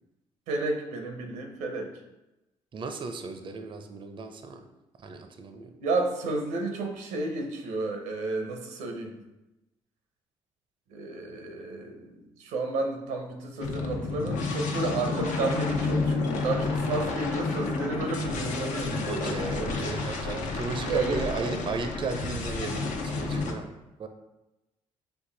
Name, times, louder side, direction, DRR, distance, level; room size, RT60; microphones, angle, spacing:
voice 1, 0.5-1.9 5.8-9.2 10.9-20.5 20.9-21.7, right 2 dB, 85° right, 3 dB, 0.7 m, -32 dB
voice 2, 2.7-4.6 5.0-5.7 19.0-24.1, right 4 dB, 40° right, 6 dB, 0.5 m, -35 dB
sound 1, 13.6-23.5, left 3 dB, 70° left, 0.7 m, -30 dB
4.6 x 2.6 x 3.8 m, 0.97 s
supercardioid pair, 60°, 13 cm